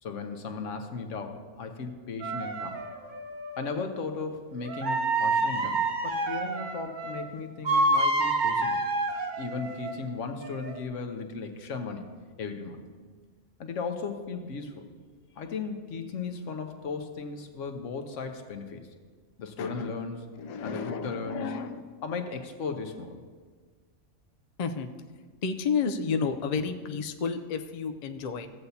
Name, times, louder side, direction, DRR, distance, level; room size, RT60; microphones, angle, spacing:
voice 1, 0.0-2.8 3.6-8.8 9.4-12.1 12.4-12.8 13.6-14.9 15.3-18.8 19.4-20.3 20.6-21.5 22.0-23.2, left 4 dB, 85° left, 5 dB, 1.2 m, -36 dB
sound 1, 2.2-3.7 4.6-7.2 7.7-10.0 10.4-10.8, right 2 dB, 45° right, 0.8 m, -28 dB
voice 2, 19.6-19.9 20.4-21.8 24.6-24.9 25.4-28.5, left 5 dB, 50° left, 7 dB, 0.5 m, -31 dB
15.0 x 7.9 x 2.8 m, 1.5 s
omnidirectional pair, 1.2 m